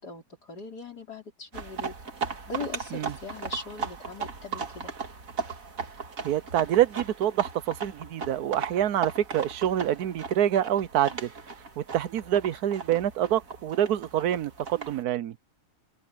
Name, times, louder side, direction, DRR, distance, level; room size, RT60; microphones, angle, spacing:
voice 1, 0.0-2.0 2.5-4.9 12.3-12.4, left 3 dB, 80° left, 5.4 m, -40 dB
sound 1, 1.5-15.0, right 5 dB, 55° right, 2.4 m, -37 dB
voice 2, 6.2-11.3 11.8-15.4, right 11 dB, 75° right, 1.2 m, -26 dB
omnidirectional pair, 1.7 m